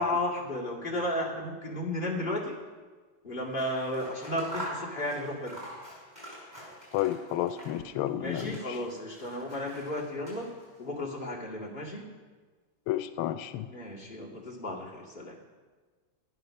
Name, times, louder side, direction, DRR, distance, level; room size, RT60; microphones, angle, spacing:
voice 1, 0.0-2.5 3.2-5.6 8.1-10.5 10.8-12.1 13.7-15.4, left 1 dB, 25° left, -4 dB, 2.4 m, -33 dB
Scissors, 3.4-7.9 8.2-10.8, equal, 10° right, 5.4 m, -45 dB
voice 2, 6.9-8.8 12.9-13.7, left 13 dB, 90° left, 11 dB, 1.4 m, -31 dB
13.5 x 9.4 x 6.4 m, 1.4 s
omnidirectional pair, 2.2 m